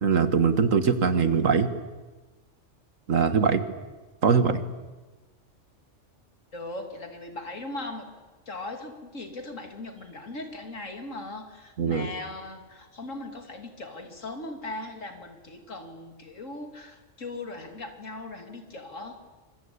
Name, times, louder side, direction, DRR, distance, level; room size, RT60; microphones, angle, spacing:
voice 1, 0.0-1.7 3.1-3.6 4.2-4.6 11.8-12.1, right 5 dB, 85° right, 10 dB, 2.1 m, -22 dB
voice 2, 6.5-8.1 8.5-19.2, left 2 dB, 75° left, 5 dB, 3.2 m, -39 dB
25.5 x 24.5 x 8.6 m, 1.2 s
omnidirectional pair, 1.3 m